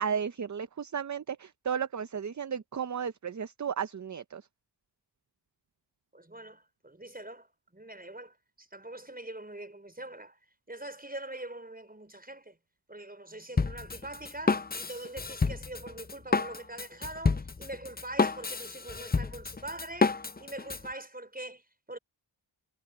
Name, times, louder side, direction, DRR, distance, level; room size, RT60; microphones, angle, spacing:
voice 1, 0.0-4.5, right 7 dB, 40° right, 0.6 m, -34 dB
voice 2, 6.1-7.5 7.7-10.4 10.7-12.6 12.9-22.0, right 1 dB, 20° right, 5.4 m, -43 dB
Drum kit, 13.6-20.9, left 4 dB, 20° left, 0.5 m, -30 dB
wide cardioid pair, 80°, 46 cm